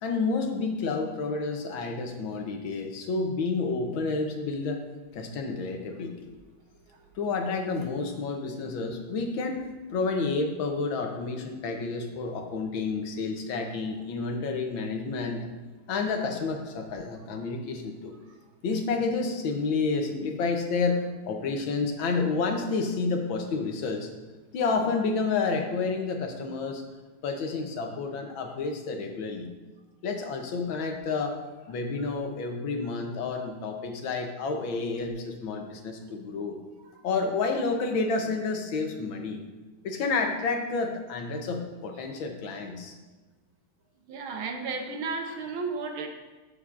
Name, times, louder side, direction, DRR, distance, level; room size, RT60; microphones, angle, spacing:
voice 1, 0.0-4.8 5.1-6.3 7.2-9.6 9.9-15.5 15.9-18.1 18.6-24.1 24.5-26.8 27.2-29.5 30.0-31.4 31.7-36.6 37.0-39.4 39.8-42.9, left 4 dB, 70° left, 4 dB, 1.6 m, -30 dB
voice 2, 44.1-46.1, right 4 dB, 75° right, 4 dB, 1.8 m, -33 dB
13.0 x 6.9 x 2.5 m, 1.2 s
omnidirectional pair, 2.3 m